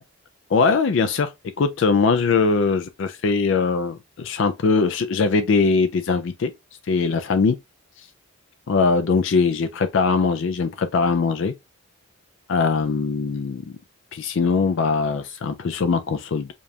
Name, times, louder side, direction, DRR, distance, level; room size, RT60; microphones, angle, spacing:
voice 1, 0.5-1.3 1.6-6.5 6.9-7.6 8.7-11.5 12.5-13.6 14.1-16.5, left 4 dB, 55° left, 0.4 m, -21 dB
5.0 x 2.4 x 2.7 m
head